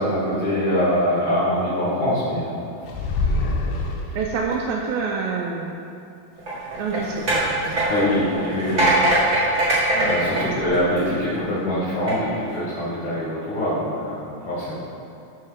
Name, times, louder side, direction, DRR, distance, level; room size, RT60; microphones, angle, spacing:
voice 1, 0.0-2.5 7.9-8.9 9.3-9.6 10.0-14.7, equal, 45° left, -15 dB, 2.2 m, -23 dB
sound 1, 2.8-4.5, left 2 dB, 80° left, 2.3 m, -24 dB
voice 2, 4.2-5.8 6.5-7.9 9.2-9.4 9.9-10.5, right 5 dB, 80° right, -1 dB, 2.1 m, -28 dB
sound 2, 6.4-11.3 11.9-12.1, right 1 dB, 50° right, 0.9 m, -22 dB
12.0 x 4.5 x 3.6 m, 2.6 s
omnidirectional pair, 4.3 m